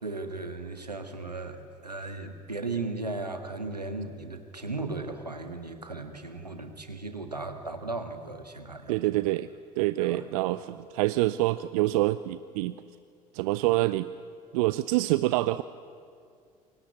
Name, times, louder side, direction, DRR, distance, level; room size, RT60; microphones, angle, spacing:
voice 1, 0.0-9.0 10.0-10.2, right 3 dB, 85° right, 7 dB, 1.6 m, -36 dB
voice 2, 8.9-9.5 9.8-12.8 13.3-14.1 14.5-15.6, right 18 dB, 60° right, 15 dB, 0.6 m, -26 dB
28.5 x 24.0 x 8.2 m, 2.3 s
figure-of-eight pair, 55°, 20 cm